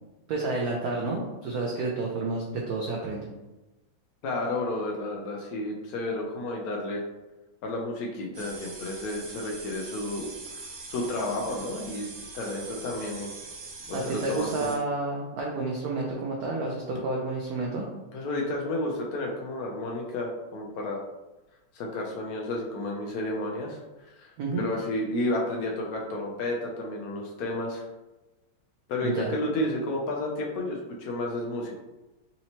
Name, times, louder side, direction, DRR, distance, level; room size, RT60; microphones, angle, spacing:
voice 1, 0.3-3.3 13.9-17.9 24.4-24.7 29.0-29.3, right 3 dB, 80° right, -1 dB, 0.8 m, -30 dB
voice 2, 4.2-7.0 7.6-10.3 10.9-13.3 13.9-14.7 18.1-21.0 21.7-23.8 24.2-24.3 24.5-27.8 28.9-31.8, left 1 dB, 80° left, -1 dB, 0.8 m, -31 dB
sound 1, 8.3-14.8, right 3 dB, 65° right, 1.1 m, -42 dB
4.2 x 2.8 x 2.8 m, 1.1 s
omnidirectional pair, 2.2 m